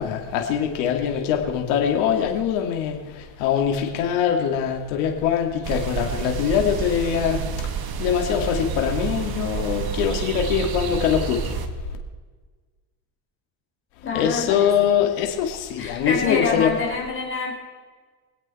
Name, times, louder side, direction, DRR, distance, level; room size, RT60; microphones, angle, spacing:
voice 1, 0.0-7.7 8.0-11.5 14.1-16.7, left 8 dB, 90° left, 2 dB, 2.6 m, -23 dB
sound 1, 5.6-11.7, right 7 dB, 55° right, 1.7 m, -29 dB
voice 2, 14.0-14.8 15.8-17.5, left 4 dB, 30° left, -1 dB, 5.0 m, -26 dB
24.5 x 8.7 x 4.3 m, 1.4 s
cardioid pair, 125°, 44 cm